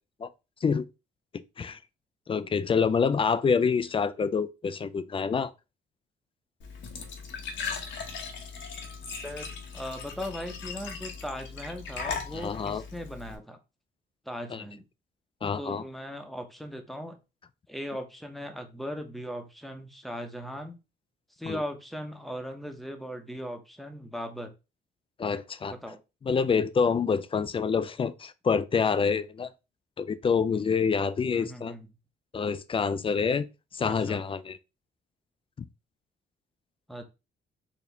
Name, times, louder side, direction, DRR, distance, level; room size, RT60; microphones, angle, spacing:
voice 1, 2.3-5.5 12.3-12.8 14.5-14.6 15.4-15.8 21.5-21.6 25.2-25.7 26.2-29.5 30.0-31.7 32.3-33.5 33.7-34.6, left 5 dB, 25° left, 0.4 m, -27 dB
Glass / Trickle dribble / Fill (with liquid), 6.6-13.4, left 5 dB, 70° left, 1.0 m, -38 dB
voice 2, 9.7-13.6 14.3-14.9 15.5-17.2 17.7-20.8 21.4-24.5 25.7-26.0 31.3-31.9 33.9-34.2 36.9-37.0, equal, ahead, 0.8 m, -38 dB
4.3 x 2.8 x 3.4 m
cardioid pair, 90°, 20 cm